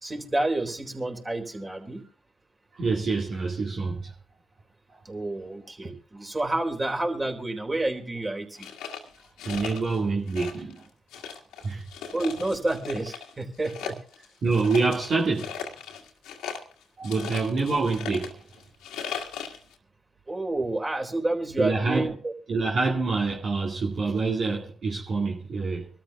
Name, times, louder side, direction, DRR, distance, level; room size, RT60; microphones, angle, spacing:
voice 1, 0.0-2.0 5.0-8.7 12.1-14.0 20.3-22.3, right 2 dB, 25° right, 3.7 m, -29 dB
voice 2, 2.7-4.1 4.9-5.0 9.4-10.8 11.6-11.8 14.4-15.5 17.0-18.4 21.6-22.1 22.5-25.9, right 4 dB, 60° right, 2.1 m, -26 dB
sound 1, 8.6-10.0 10.3-10.8 11.1-13.3 13.6-19.7, left 7 dB, 80° left, 1.8 m, -38 dB
25.5 x 13.0 x 2.3 m
hypercardioid pair, 50°, 0 cm